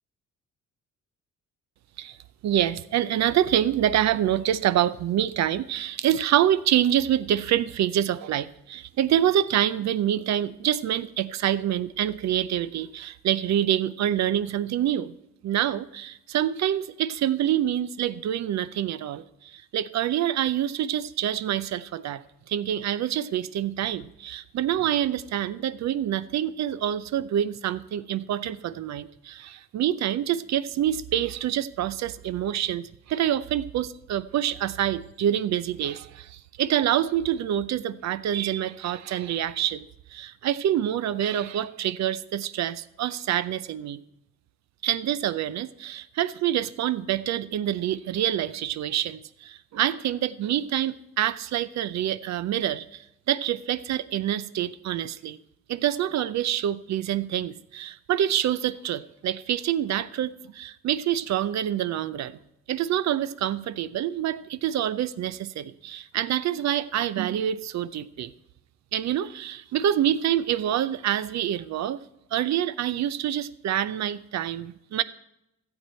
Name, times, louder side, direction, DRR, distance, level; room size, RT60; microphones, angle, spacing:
voice 1, 2.4-15.1 15.4-22.2 22.5-39.8 40.1-44.0 44.8-55.4 55.7-62.4 62.7-68.3 68.9-72.0 72.3-75.0, right 11 dB, 65° right, 14 dB, 0.5 m, -26 dB
14.0 x 7.8 x 4.3 m, 0.84 s
cardioid pair, 90°, 30 cm